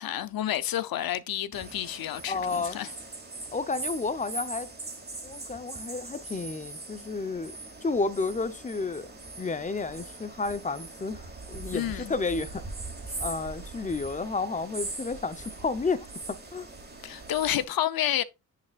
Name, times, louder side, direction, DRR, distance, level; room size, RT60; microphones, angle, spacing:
voice 1, 0.0-2.9 11.7-12.1 17.0-18.2, left 12 dB, 70° left, 0.7 m, -30 dB
sound 1, 1.5-17.6, right 3 dB, 25° right, 2.4 m, -41 dB
voice 2, 2.3-2.8 3.5-4.7 5.2-7.5 7.8-9.1 9.4-12.6 13.2-16.7, left 4 dB, 20° left, 0.7 m, -31 dB
10.0 x 5.6 x 2.4 m
cardioid pair, 105°, 38 cm